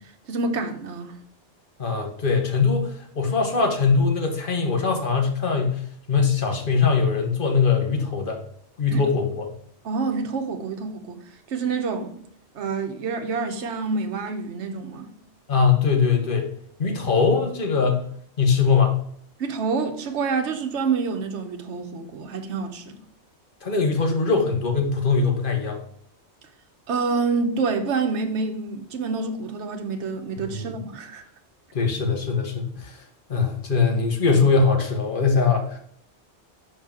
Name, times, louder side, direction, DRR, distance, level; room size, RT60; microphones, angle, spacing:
voice 1, 0.3-1.2 8.9-9.0 9.8-11.2 11.5-12.2 12.5-15.1 19.4-23.0 26.9-31.2, right 4 dB, 85° right, 1.1 m, -27 dB
voice 2, 1.8-8.4 8.8-9.5 15.5-16.5 16.8-18.1 18.4-19.0 23.6-25.8 30.4-30.7 31.7-33.0 33.3-35.8, left 5 dB, 50° left, 1.3 m, -21 dB
5.7 x 5.4 x 3.7 m
omnidirectional pair, 1.2 m